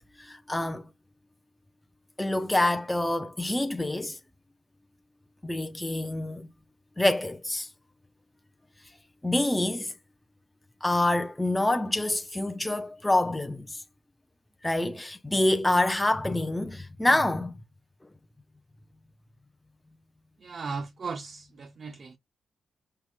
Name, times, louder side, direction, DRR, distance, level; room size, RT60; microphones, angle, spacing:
voice 1, 0.2-0.9 2.2-4.2 5.4-6.5 7.0-7.7 9.2-9.9 10.8-13.8 14.6-17.6, left 1 dB, 15° left, 0.5 m, -26 dB
voice 2, 20.4-22.1, right 4 dB, 55° right, 0.4 m, -37 dB
4.5 x 2.1 x 3.5 m
supercardioid pair, 50°, 0 cm